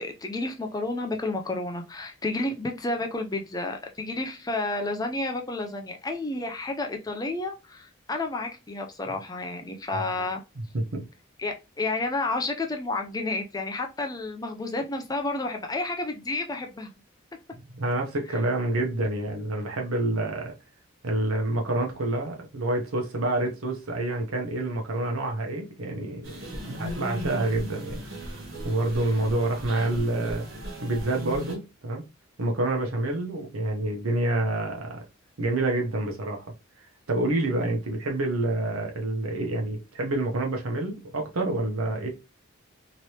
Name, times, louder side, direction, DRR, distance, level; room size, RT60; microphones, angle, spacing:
voice 1, 0.0-10.4 11.4-16.9 18.3-18.4 26.6-26.8, left 2 dB, 20° left, 0.4 m, -31 dB
voice 2, 17.7-20.5 21.0-26.4 26.7-28.0 28.6-30.4 30.8-32.0 32.4-35.0 35.4-36.5 37.1-42.1, right 2 dB, 85° right, 0.9 m, -27 dB
sound 1, 26.2-31.5, equal, 70° right, 1.2 m, -37 dB
3.2 x 2.9 x 2.8 m
head